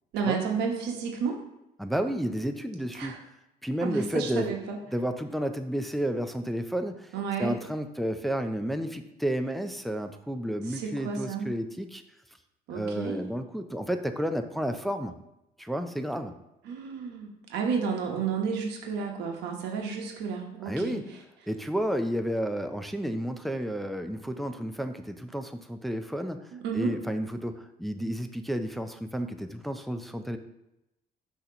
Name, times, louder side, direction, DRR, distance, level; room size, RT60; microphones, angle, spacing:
voice 1, 0.1-1.4 2.9-3.2 3.8-4.8 7.1-7.6 10.6-11.5 12.7-13.2 16.6-21.0 26.5-26.9, right 5 dB, 85° right, 1 dB, 1.0 m, -31 dB
voice 2, 1.8-3.2 3.6-4.5 4.9-7.1 7.4-12.0 12.7-15.2 15.6-16.3 20.7-21.1 21.5-26.4 26.7-30.4, equal, ahead, 7 dB, 0.4 m, -31 dB
6.3 x 2.9 x 5.7 m, 0.88 s
cardioid pair, 110°, 17 cm